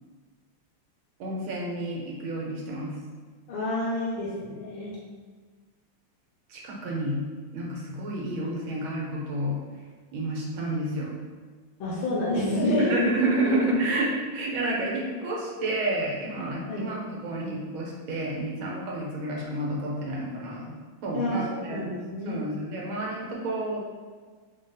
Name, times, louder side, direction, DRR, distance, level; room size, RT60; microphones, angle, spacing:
voice 1, 1.2-2.9 6.5-7.2 7.5-9.6 10.1-11.1 12.9-20.7 21.0-21.8 22.3-23.8, right 1 dB, 80° right, -3 dB, 1.6 m, -30 dB
voice 2, 3.5-5.0 11.8-13.0 13.5-13.6 16.7-16.9 21.1-22.4, left 1 dB, 85° left, -5 dB, 1.6 m, -28 dB
4.1 x 2.3 x 3.9 m, 1.5 s
omnidirectional pair, 2.2 m